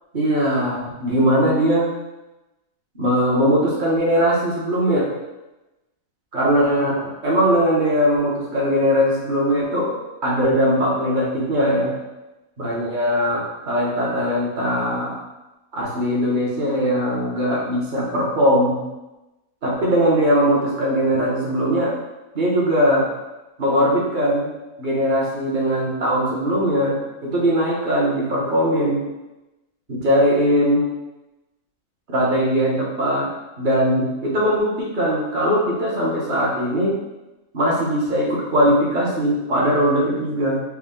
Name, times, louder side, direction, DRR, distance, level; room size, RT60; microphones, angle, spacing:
voice 1, 0.1-1.9 2.9-5.1 6.3-9.9 10.2-11.9 12.6-15.1 15.7-18.8 19.6-21.9 22.3-23.1 23.6-24.5 24.8-29.0 29.9-30.9 32.1-33.3 33.6-36.9 37.5-40.6, equal, 40° right, -4 dB, 0.9 m, -20 dB
4.3 x 2.2 x 3.7 m, 1.0 s
omnidirectional pair, 1.6 m